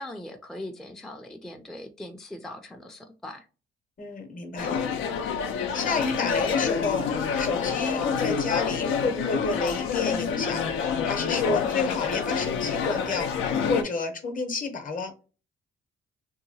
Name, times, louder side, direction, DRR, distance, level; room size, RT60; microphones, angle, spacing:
voice 1, 0.0-3.5, left 1 dB, ahead, 4 dB, 0.4 m, -40 dB
voice 2, 4.0-4.8 5.7-10.6 11.0-13.3 13.7-15.1, left 3 dB, 45° left, 6 dB, 0.7 m, -30 dB
sound 1, 4.6-13.8, left 6 dB, 90° left, 0.5 m, -27 dB
2.8 x 2.3 x 2.6 m, 0.34 s
cardioid pair, 90°, 20 cm